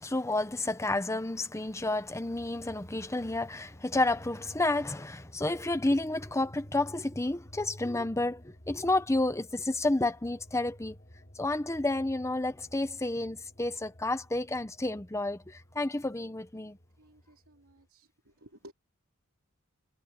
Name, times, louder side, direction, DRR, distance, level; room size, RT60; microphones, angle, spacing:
voice 1, 0.0-10.9 11.4-16.8, left 2 dB, 15° left, 0.9 m, -30 dB
sound 1, 1.7-17.9, equal, 40° left, 4.0 m, -53 dB
voice 2, 17.0-18.7, equal, 75° right, 2.6 m, -55 dB
head